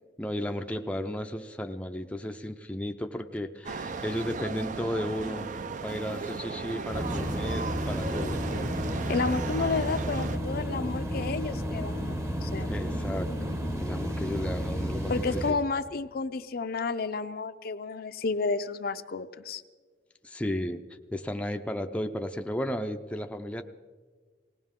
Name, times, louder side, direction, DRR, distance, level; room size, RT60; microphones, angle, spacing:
voice 1, 0.2-5.5 5.8-8.4 12.7-15.6 20.2-20.8 21.1-23.6, left 1 dB, 5° left, 5 dB, 0.5 m, -34 dB
sound 1, 3.6-10.4, right 4 dB, 45° right, 0.5 m, -36 dB
sound 2, 6.9-15.5, equal, 15° right, 0.8 m, -32 dB
voice 2, 9.1-12.7 15.1-19.6, left 4 dB, 55° left, 10 dB, 0.5 m, -31 dB
19.0 x 18.0 x 3.7 m, 1.5 s
head